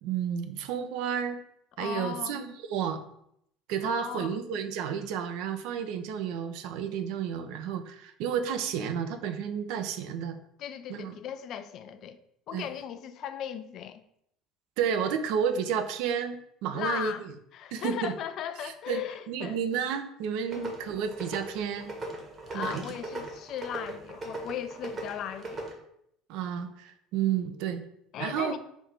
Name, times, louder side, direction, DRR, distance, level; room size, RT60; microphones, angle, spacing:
voice 1, 0.0-1.4 1.8-3.0 3.7-10.4 10.9-11.2 12.5-12.7 14.8-17.1 17.7-18.1 18.6-19.0 19.3-21.9 22.5-22.8 26.3-27.8 28.2-28.6, right 8 dB, 60° right, 0.4 m, -31 dB
voice 2, 1.8-2.4 3.8-4.3 10.6-12.2 12.5-14.0 16.7-19.6 20.5-20.8 22.5-25.7 28.1-28.6, left 9 dB, 50° left, 0.3 m, -37 dB
sound 1, 20.5-25.7, right 2 dB, 35° right, 1.0 m, -39 dB
3.5 x 2.6 x 4.6 m
figure-of-eight pair, 60°, 0 cm